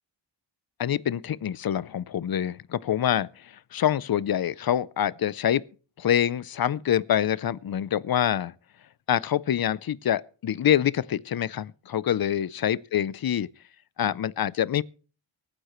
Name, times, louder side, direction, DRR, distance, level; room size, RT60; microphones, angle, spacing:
voice 1, 0.8-5.6 6.0-8.5 9.1-13.5 14.0-14.8, left 10 dB, 50° left, 0.6 m, -26 dB
24.0 x 9.8 x 3.1 m
wide cardioid pair, 90°, 46 cm